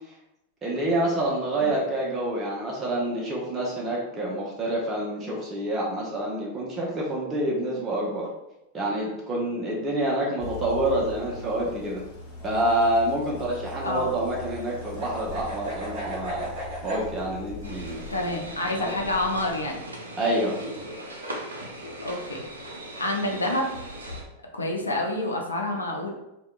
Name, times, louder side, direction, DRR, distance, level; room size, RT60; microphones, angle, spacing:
voice 1, 0.6-8.3 8.7-12.0 12.4-16.5 16.8-18.0 18.8-18.9 20.2-20.6, right 1 dB, 20° right, -4 dB, 0.6 m, -27 dB
sound 1, 10.4-19.7, left 3 dB, 40° left, 0.7 m, -41 dB
sound 2, 12.3-17.0, right 2 dB, 45° right, 1.3 m, -37 dB
sound 3, 17.6-24.2, right 1 dB, 75° right, 0.5 m, -39 dB
voice 2, 18.1-19.8 22.0-22.4 23.0-23.7 24.5-26.1, left 1 dB, 80° left, 1 dB, 0.4 m, -28 dB
2.7 x 2.1 x 2.4 m, 0.88 s
figure-of-eight pair, 90°, 0 cm